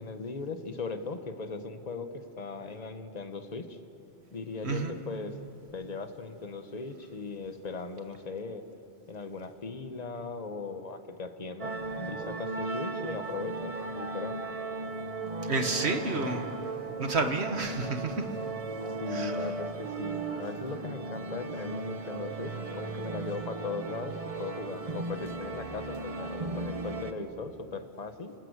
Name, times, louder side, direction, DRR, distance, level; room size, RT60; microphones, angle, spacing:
voice 1, 0.0-3.8 4.3-5.4 5.7-8.6 9.1-14.4 19.0-28.3, left 4 dB, 40° left, 8 dB, 1.3 m, -38 dB
voice 2, 4.6-5.0 15.4-16.5 17.0-18.3 19.1-19.5, right 3 dB, 75° right, 6 dB, 1.8 m, -30 dB
sound 1, 11.6-27.1, right 3 dB, 35° right, 1.1 m, -36 dB
30.0 x 18.5 x 8.1 m, 2.9 s
omnidirectional pair, 1.1 m